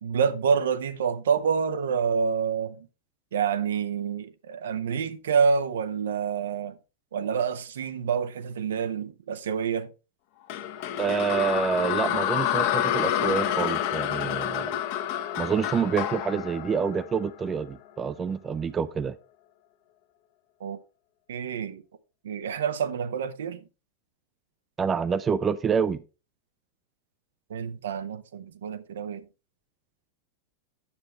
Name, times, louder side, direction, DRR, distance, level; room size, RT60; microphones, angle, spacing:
voice 1, 0.0-2.9 3.3-6.8 7.1-9.9 20.6-20.8 21.3-21.8 22.2-23.6 27.5-29.3, right 6 dB, 60° right, 0.9 m, -27 dB
sound 1, 10.5-17.7, left 10 dB, 45° left, 1.1 m, -28 dB
voice 2, 11.0-14.7 15.4-19.2 24.8-26.0, right 6 dB, 20° right, 0.5 m, -27 dB
9.7 x 7.5 x 3.2 m
figure-of-eight pair, 90°, 0 cm